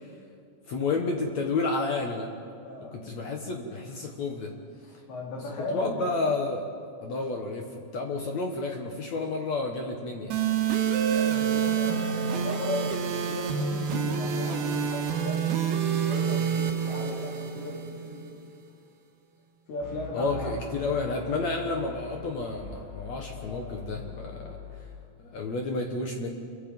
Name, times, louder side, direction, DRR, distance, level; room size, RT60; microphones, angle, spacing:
voice 1, 0.7-2.3 2.9-4.5 5.7-6.7 7.0-10.4 20.1-24.6 25.2-26.3, left 3 dB, 65° left, 2 dB, 1.8 m, -30 dB
voice 2, 2.6-3.0 4.8-6.2 11.1-18.2 19.7-20.5 23.3-23.8, left 2 dB, 80° left, -2 dB, 6.3 m, -37 dB
sound 1, 10.3-18.3, right 7 dB, 65° right, 3.4 m, -27 dB
sound 2, 19.8-24.8, left 4 dB, 35° left, 6.2 m, -42 dB
28.0 x 23.0 x 5.4 m, 2.3 s
omnidirectional pair, 5.0 m